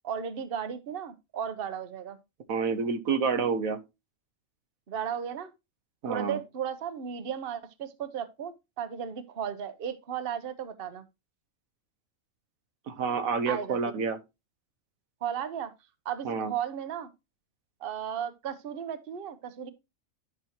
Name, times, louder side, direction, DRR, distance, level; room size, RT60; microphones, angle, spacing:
voice 1, 0.0-2.2 4.9-5.5 6.1-11.0 13.5-13.8 15.2-15.7 16.0-17.1 17.8-19.7, right 8 dB, 50° right, 1.0 m, -35 dB
voice 2, 2.5-3.8 6.0-6.4 12.9-14.2 16.2-16.5, right 5 dB, 85° right, 1.5 m, -28 dB
11.5 x 6.1 x 2.9 m
omnidirectional pair, 1.4 m